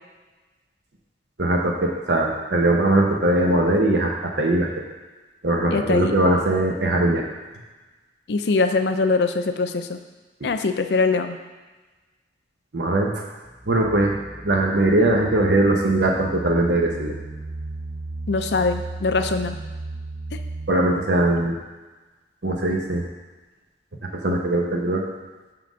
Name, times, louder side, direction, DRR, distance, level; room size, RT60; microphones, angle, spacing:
voice 1, 1.4-4.7 5.4-7.2 10.4-10.5 12.7-13.2 13.7-17.1 20.7-21.5 22.4-23.0 24.2-25.0, right 1 dB, 70° right, 0 dB, 0.9 m, -20 dB
voice 2, 5.7-6.1 8.3-10.0 10.4-11.4 18.3-19.6, left 3 dB, 70° left, 8 dB, 0.5 m, -22 dB
sound 1, 13.5-21.3, right 2 dB, 5° right, 0.3 m, -35 dB
5.8 x 5.4 x 6.2 m, 1.2 s
head